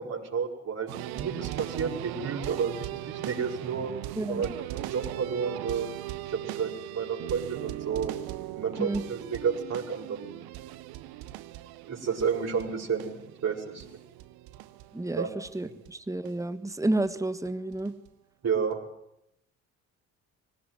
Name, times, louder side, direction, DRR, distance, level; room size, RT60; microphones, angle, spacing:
voice 1, 0.0-3.9 4.3-5.9 6.3-8.2 8.5-10.4 11.9-13.8 15.1-15.3 15.6-15.7 18.4-18.8, right 6 dB, 40° right, -3 dB, 6.8 m, -31 dB
sound 1, 0.9-15.5 15.8-15.9 16.2-16.3 17.0-17.1 17.4-18.1 18.7-18.8, right 15 dB, 60° right, 1.4 m, -39 dB
voice 2, 4.2-4.6 8.8-9.0 14.9-18.0, right 2 dB, 10° right, 12 dB, 1.7 m, -30 dB
25.0 x 18.0 x 9.8 m, 0.80 s
figure-of-eight pair, 45°, 41 cm